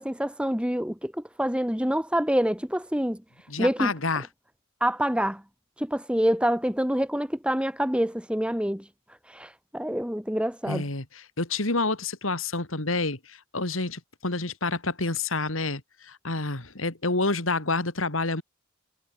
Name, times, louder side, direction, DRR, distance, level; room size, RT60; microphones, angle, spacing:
voice 1, 0.0-3.9 4.8-5.4 5.8-8.9 9.2-10.9, equal, 5° right, 3.2 m, -27 dB
voice 2, 3.5-4.3 10.7-11.0 11.4-15.8 16.1-18.4, left 3 dB, 80° left, 3.6 m, -28 dB
head